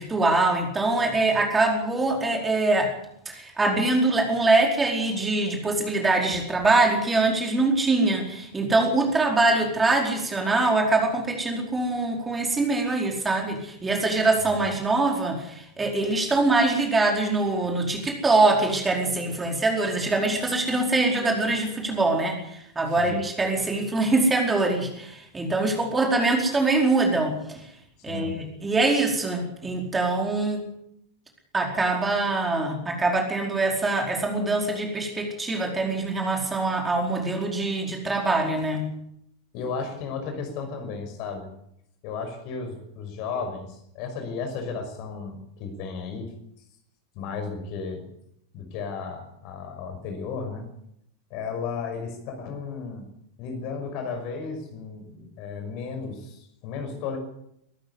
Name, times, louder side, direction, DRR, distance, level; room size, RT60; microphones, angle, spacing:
voice 1, 0.0-2.9 3.3-27.6 28.0-30.7 31.5-38.8, right 2 dB, 15° right, 1 dB, 4.7 m, -23 dB
voice 2, 28.1-28.4 39.5-41.5 42.0-46.3 47.2-48.1 48.5-50.7 51.3-53.1 53.4-57.2, left 5 dB, 45° left, 6 dB, 5.6 m, -34 dB
23.0 x 14.0 x 8.3 m, 0.76 s
figure-of-eight pair, 90°, 0 cm